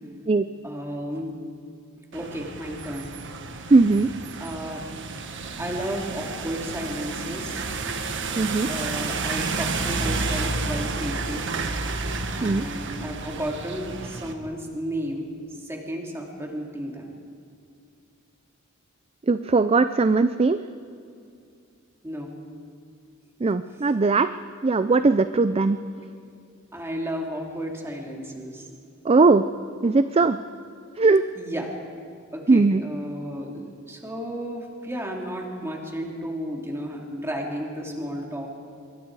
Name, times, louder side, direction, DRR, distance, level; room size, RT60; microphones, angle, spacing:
voice 1, 0.6-1.3 2.1-3.1 4.4-4.8 5.1-5.3 5.6-7.6 8.7-11.5 12.4-17.1 22.0-22.3 26.7-28.7 31.4-31.7 32.3-38.5, equal, 15° right, 0 dB, 2.8 m, -33 dB
sound 1, 2.1-14.3, right 3 dB, 60° right, 1.5 m, -31 dB
voice 2, 3.7-4.1 8.4-8.7 12.4-12.7 19.3-20.6 23.4-24.3 24.6-25.8 29.0-29.4 29.8-30.4 31.0-31.2 32.5-32.8, right 3 dB, 30° right, 11 dB, 0.4 m, -19 dB
25.0 x 22.0 x 4.8 m, 2.4 s
head